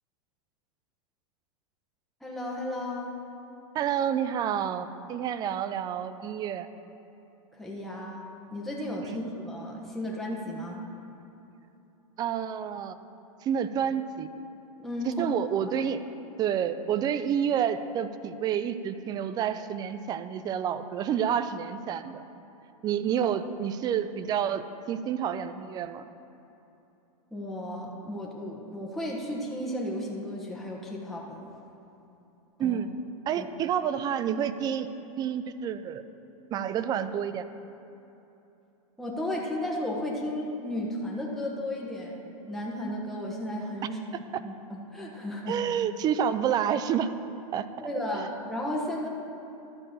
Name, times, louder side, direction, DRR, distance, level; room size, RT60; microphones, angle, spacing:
voice 1, 2.2-3.1 7.5-8.2 8.5-10.8 14.8-15.3 27.3-31.4 32.6-32.8 33.3-33.5 39.0-42.2 42.5-44.0 44.4-45.6 47.8-49.1, left 1 dB, ahead, -3 dB, 1.2 m, -34 dB
voice 2, 3.7-6.7 9.1-9.2 12.2-12.9 13.4-14.3 15.0-16.0 16.4-22.2 22.8-26.1 32.6-32.9 33.3-34.9 35.2-36.0 36.5-37.5 45.5-47.1 47.5-47.7 48.1-48.3, right 8 dB, 20° right, 12 dB, 0.4 m, -29 dB
12.5 x 4.5 x 7.3 m, 3.0 s
hypercardioid pair, 135°, 19 cm